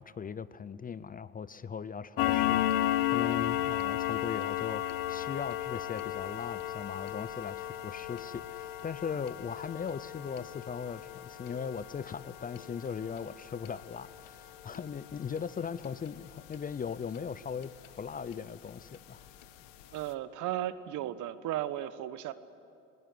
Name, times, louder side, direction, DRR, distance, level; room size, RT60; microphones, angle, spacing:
voice 1, 0.0-17.7 18.0-19.2, left 6 dB, 25° left, 17 dB, 0.6 m, -39 dB
sound 1, 2.2-17.3 17.6-17.9 18.3-18.4 18.9-19.0 19.4-19.5 19.8-19.9, left 13 dB, 65° left, 1.3 m, -34 dB
voice 2, 19.9-22.3, right 13 dB, 55° right, 14 dB, 1.1 m, -35 dB
20.5 x 19.0 x 9.6 m, 2.5 s
hypercardioid pair, 70°, 36 cm